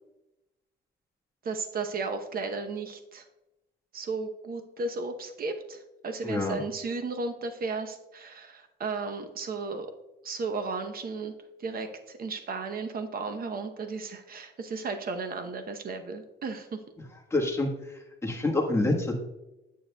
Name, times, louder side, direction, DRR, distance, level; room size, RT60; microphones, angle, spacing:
voice 1, 1.4-3.2 3.9-9.9 10.2-11.3 11.6-16.8, right 4 dB, 50° right, 7 dB, 0.8 m, -34 dB
voice 2, 6.2-6.6 17.3-17.7 18.2-19.2, left 2 dB, 15° left, 0 dB, 1.3 m, -26 dB
8.8 x 6.6 x 2.2 m, 1.0 s
cardioid pair, 90°, 20 cm